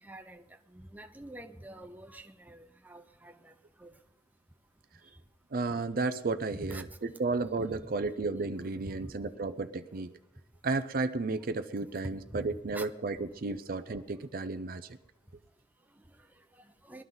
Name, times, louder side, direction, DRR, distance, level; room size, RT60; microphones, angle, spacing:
voice 1, 0.0-5.4 6.5-7.2 8.7-9.3 10.5-10.7 12.2-12.9 13.1-13.2 13.7-13.8 14.1-14.3 15.0-17.0, right 1 dB, 10° right, 0.8 m, -49 dB
voice 2, 5.5-6.8 7.2-10.1 10.6-14.9, right 3 dB, 50° right, 0.5 m, -33 dB
20.5 x 12.5 x 3.9 m
head